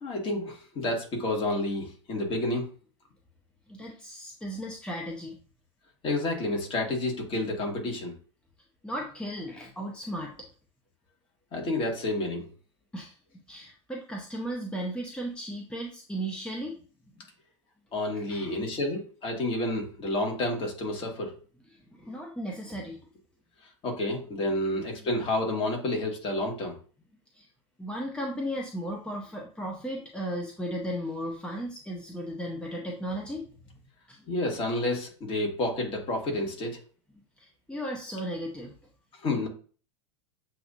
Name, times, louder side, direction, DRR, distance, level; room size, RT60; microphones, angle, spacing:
voice 1, 0.0-2.7 6.0-8.1 11.5-12.5 17.9-21.4 23.8-26.8 34.3-36.8 39.2-39.5, left 1 dB, 35° left, 0 dB, 1.7 m, -30 dB
voice 2, 3.7-5.3 8.8-10.3 12.9-13.1 13.5-16.8 17.2-17.3 18.1-18.6 21.7-23.0 25.0-25.1 27.3-27.5 27.8-33.5 34.1-34.2 37.4-38.7, equal, 5° left, 0 dB, 0.8 m, -36 dB
7.5 x 2.6 x 2.6 m, 0.40 s
hypercardioid pair, 110°, 16 cm